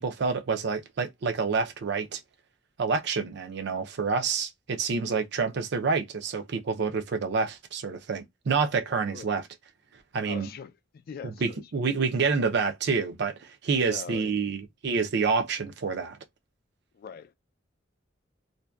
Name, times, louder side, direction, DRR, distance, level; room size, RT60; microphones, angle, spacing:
voice 1, 0.0-2.2 2.8-9.5 10.1-10.5 11.2-16.2, right 5 dB, 60° right, 0.4 m, -28 dB
voice 2, 10.2-11.6 13.8-14.5 16.9-17.3, left 7 dB, 50° left, 0.3 m, -42 dB
2.6 x 2.1 x 2.2 m
head